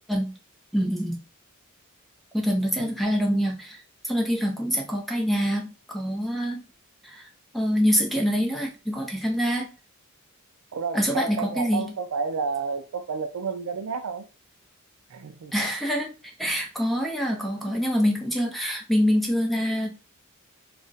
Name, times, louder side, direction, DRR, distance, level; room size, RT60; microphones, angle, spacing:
voice 1, 0.7-1.2 2.3-6.6 7.0-7.2 7.5-9.7 10.9-11.9 15.5-16.1 16.4-19.9, equal, ahead, 0.6 m, -25 dB
voice 2, 10.7-14.3 15.1-15.5 17.3-17.8, right 5 dB, 90° right, 0.4 m, -31 dB
2.4 x 2.1 x 3.9 m
head